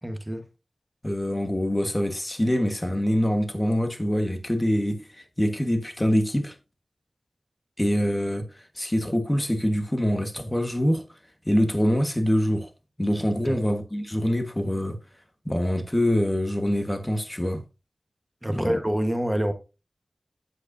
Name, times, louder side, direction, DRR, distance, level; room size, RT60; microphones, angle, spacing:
voice 1, 0.0-0.5 13.4-13.6 18.4-19.5, equal, 15° right, 1.3 m, -27 dB
voice 2, 1.0-6.5 7.8-11.0 11.4-12.7 13.0-15.0 15.4-17.6 18.5-18.8, equal, 15° left, 1.4 m, -25 dB
9.4 x 7.9 x 2.7 m
wide cardioid pair, 75°, 0 cm